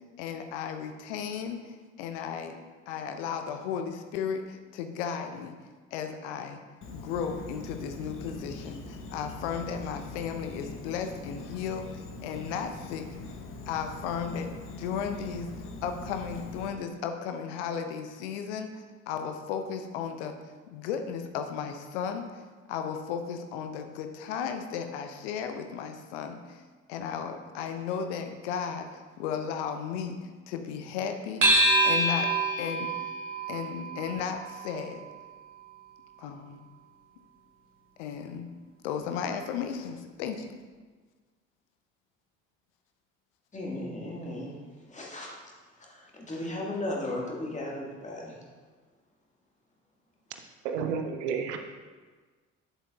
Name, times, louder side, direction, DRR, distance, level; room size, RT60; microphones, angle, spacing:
voice 1, 0.2-2.6 2.9-5.5 5.9-6.6 6.9-13.1 13.7-14.5 14.8-15.5 15.8-20.4 20.7-22.4 22.7-26.6 26.9-31.5 31.8-32.3 32.6-32.9 33.5-35.0 36.2-36.7 38.0-38.5 38.8-40.5, left 7 dB, 65° left, 7 dB, 0.7 m, -35 dB
Insect, 6.8-16.7, left 2 dB, 35° left, 0.9 m, -42 dB
sound 1, 31.4-36.2, right 1 dB, 85° right, 1.0 m, -27 dB
voice 2, 43.5-44.6 44.9-45.3 45.8-48.4, left 1 dB, 20° left, -2 dB, 1.8 m, -36 dB
voice 3, 50.6-51.6, right 6 dB, 70° right, 5 dB, 0.7 m, -31 dB
8.2 x 7.3 x 2.4 m, 1.4 s
figure-of-eight pair, 45°, 37 cm